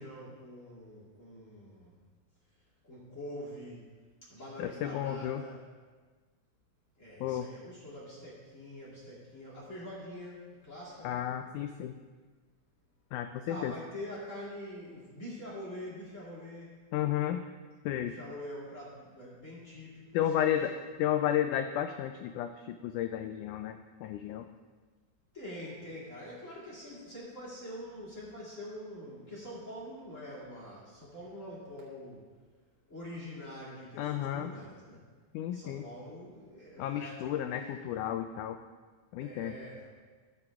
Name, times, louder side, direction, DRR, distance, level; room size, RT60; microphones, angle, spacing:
voice 1, 0.0-1.9 2.8-3.9 4.3-5.6 7.0-11.2 13.5-16.8 18.0-20.5 25.3-32.2 32.9-35.0 35.5-38.0 39.2-39.9, left 1 dB, 25° left, -8 dB, 2.6 m, -45 dB
voice 2, 4.6-5.4 7.2-7.5 11.0-12.0 13.1-13.7 16.9-17.4 17.8-18.1 20.1-20.7 21.0-24.5 34.0-34.5 35.3-35.8 36.8-38.6 39.1-39.6, left 11 dB, 85° left, 7 dB, 1.8 m, -32 dB
13.5 x 8.5 x 3.6 m, 1.4 s
omnidirectional pair, 4.1 m